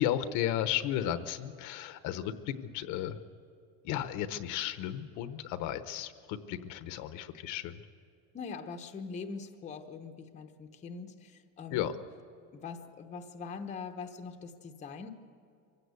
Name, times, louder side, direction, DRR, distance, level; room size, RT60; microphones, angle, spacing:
voice 1, 0.0-3.2 3.8-7.7 11.7-11.9, left 11 dB, 50° left, 11 dB, 0.9 m, -34 dB
voice 2, 8.3-11.9 12.5-15.1, left 5 dB, 20° left, 5 dB, 0.9 m, -42 dB
24.5 x 16.0 x 8.2 m, 2.5 s
cardioid pair, 180°, 38 cm